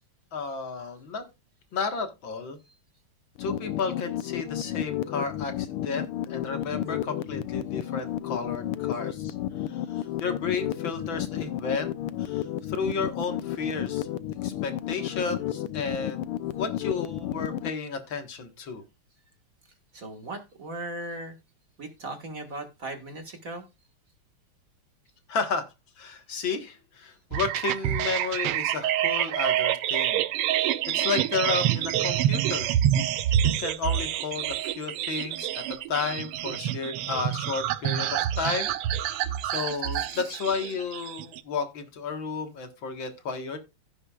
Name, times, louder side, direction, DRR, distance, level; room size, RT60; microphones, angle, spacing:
voice 1, 0.3-1.2 1.7-2.6 3.4-9.3 9.7-14.1 14.4-18.8 25.3-32.7 33.6-43.6, left 4 dB, 60° left, 7 dB, 2.2 m, -33 dB
sound 1, 3.4-17.7, left 12 dB, 85° left, 1.6 m, -32 dB
voice 2, 19.9-21.4 21.8-23.7 39.7-40.4, right 2 dB, 40° right, 6 dB, 1.9 m, -38 dB
sound 2, 27.3-41.4, right 11 dB, 85° right, 1.6 m, -27 dB
16.0 x 6.6 x 2.4 m, 0.25 s
omnidirectional pair, 2.4 m